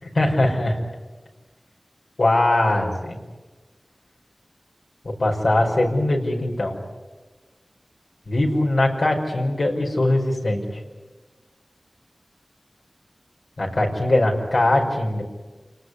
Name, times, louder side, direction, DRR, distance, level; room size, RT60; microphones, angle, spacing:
voice 1, 0.0-0.8 2.2-3.2 5.0-6.8 8.3-10.8 13.6-15.2, left 1 dB, 70° left, 0 dB, 5.5 m, -21 dB
29.0 x 19.0 x 9.7 m, 1.3 s
wide cardioid pair, 70°, 0 cm